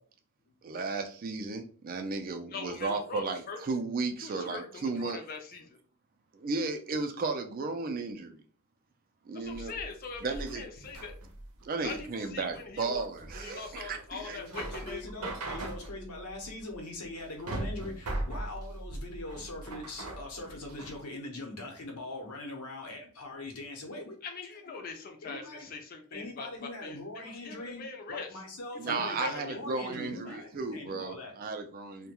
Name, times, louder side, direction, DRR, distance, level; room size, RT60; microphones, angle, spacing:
voice 1, 0.6-5.3 6.3-8.4 9.3-9.8 10.2-10.6 11.6-14.4 28.8-32.1, right 3 dB, 40° right, 6 dB, 0.3 m, -34 dB
voice 2, 2.5-3.6 4.2-5.8 9.3-11.1 11.8-13.0 13.3-15.1 24.2-28.4 28.9-29.6 30.3-30.4, left 4 dB, 40° left, 4 dB, 0.4 m, -42 dB
sound 1, 9.4-21.0, right 2 dB, 85° right, 0.6 m, -40 dB
voice 3, 14.3-24.2 24.4-24.8 25.2-25.7 26.1-31.4, left 2 dB, 85° left, 2 dB, 0.8 m, -42 dB
2.3 x 2.1 x 2.9 m, 0.43 s
head